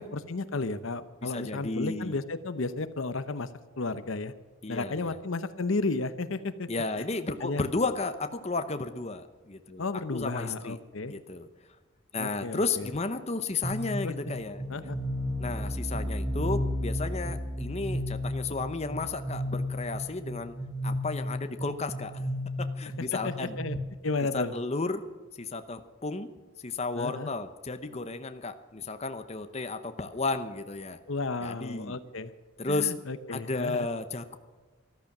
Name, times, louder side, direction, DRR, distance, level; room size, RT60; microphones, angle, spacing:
voice 1, 0.0-3.5 3.8-4.3 4.7-6.7 7.0-7.1 7.4-7.6 9.8-11.1 12.2-12.9 14.0-14.1 14.7-15.0 23.2-23.8 24.0-24.5 26.9-27.3 31.1-32.3 32.7-33.9, left 3 dB, 65° left, 12 dB, 0.8 m, -33 dB
voice 2, 1.2-2.2 4.6-5.2 6.7-9.8 10.1-10.8 11.1-11.5 12.1-14.6 15.4-20.5 20.8-22.2 22.8-23.6 24.3-25.0 25.4-26.3 26.6-31.0 31.4-32.0 32.6-32.9 33.3-34.4, left 3 dB, 30° left, 9 dB, 0.8 m, -33 dB
sound 1, 13.6-23.8, equal, 20° right, 1.4 m, -33 dB
14.0 x 13.5 x 6.0 m, 1.3 s
head